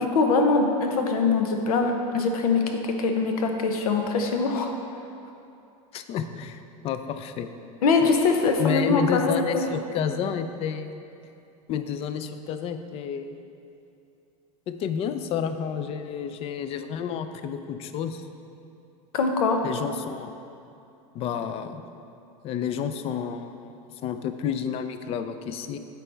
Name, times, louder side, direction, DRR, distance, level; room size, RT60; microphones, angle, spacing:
voice 1, 0.0-4.7 7.8-9.7 19.1-19.6, left 4 dB, 90° left, 4 dB, 0.7 m, -23 dB
voice 2, 5.9-7.5 8.6-10.9 11.7-13.4 14.7-18.3 19.6-20.3 21.1-21.8 22.4-23.7 24.0-25.8, left 7 dB, 35° left, 9 dB, 0.3 m, -30 dB
8.3 x 4.5 x 3.3 m, 2.7 s
supercardioid pair, 125°, 18 cm